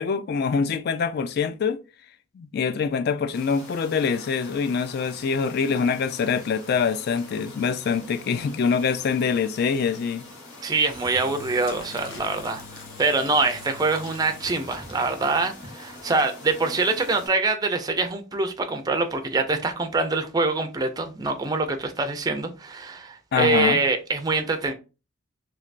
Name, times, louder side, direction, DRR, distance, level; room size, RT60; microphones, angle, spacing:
voice 1, 0.0-1.8 2.4-10.3 23.3-23.8, left 5 dB, 50° left, 0.3 m, -24 dB
sound 1, 3.3-17.3, left 2 dB, 90° left, 1.8 m, -44 dB
voice 2, 10.6-24.7, right 3 dB, 20° right, 0.4 m, -25 dB
Engine / Drill, 10.7-15.2, left 5 dB, 70° left, 0.8 m, -44 dB
3.2 x 2.8 x 2.4 m
head